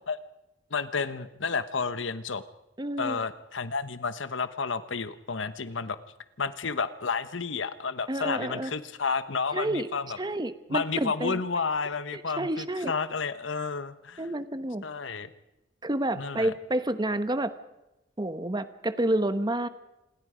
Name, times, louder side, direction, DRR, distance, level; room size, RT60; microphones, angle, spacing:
voice 1, 0.7-2.4 3.0-6.0 6.4-10.2 10.7-14.3 14.8-15.3 16.1-16.5, left 5 dB, 85° left, 13 dB, 1.1 m, -31 dB
voice 2, 2.8-3.2 8.1-8.7 9.5-9.9 10.2-11.4 12.1-12.9 14.2-14.8 15.8-17.5 18.2-19.7, right 1 dB, 25° right, 11 dB, 1.1 m, -29 dB
27.0 x 21.0 x 5.1 m, 0.96 s
head